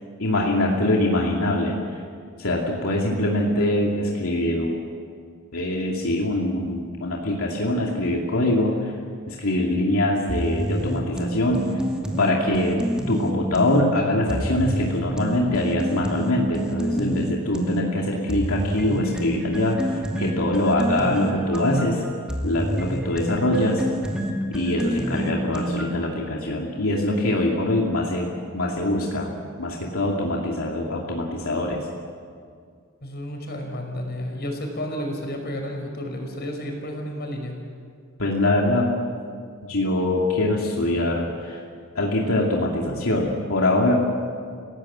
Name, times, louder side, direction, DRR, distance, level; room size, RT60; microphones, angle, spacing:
voice 1, 0.2-1.8 2.4-4.8 5.5-8.9 9.3-11.6 12.2-22.0 22.4-23.8 24.5-28.3 28.5-29.3 29.6-31.9 38.2-38.9 39.6-41.6 41.9-44.0, left 1 dB, 85° left, -1 dB, 2.5 m, -23 dB
sound 1, 10.3-13.8 14.3-17.8 18.3-26.1, right 1 dB, 5° right, 2.4 m, -28 dB
voice 2, 33.0-37.6, equal, 50° left, 2 dB, 5.3 m, -31 dB
30.0 x 17.5 x 7.5 m, 2.2 s
head